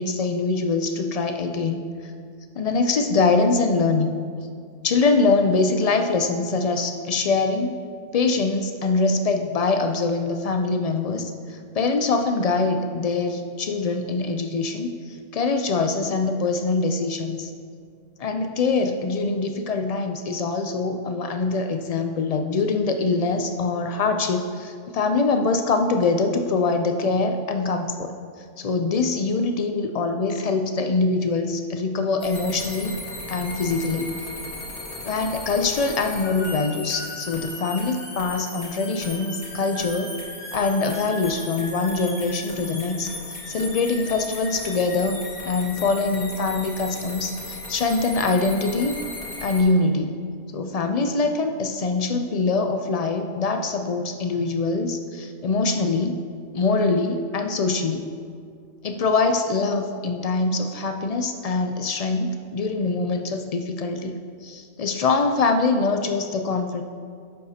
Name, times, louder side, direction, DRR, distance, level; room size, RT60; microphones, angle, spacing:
voice 1, 0.0-2.1 2.6-4.2 4.8-7.8 8.1-17.5 18.2-28.1 28.6-33.0 33.3-34.1 35.0-40.1 40.5-48.9 49.4-50.2 50.5-56.2 56.5-58.1 58.8-66.8, left 3 dB, 80° left, 6 dB, 0.3 m, -23 dB
sound 1, 32.2-49.6, left 2 dB, 45° left, 1.5 m, -36 dB
11.5 x 7.7 x 2.8 m, 2.1 s
omnidirectional pair, 1.3 m